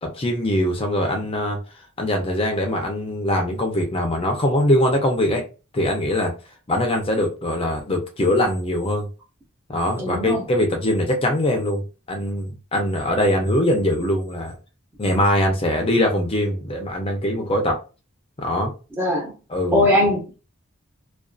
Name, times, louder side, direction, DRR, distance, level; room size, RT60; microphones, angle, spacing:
voice 1, 0.0-1.6 2.0-5.4 5.7-6.3 6.7-9.1 9.7-14.5 15.0-17.8 18.4-18.7 19.5-20.1, left 1 dB, 25° left, 0.5 m, -22 dB
voice 2, 10.0-10.4 19.0-19.3 19.7-20.3, left 1 dB, 10° right, 0.6 m, -20 dB
2.5 x 2.3 x 2.3 m
head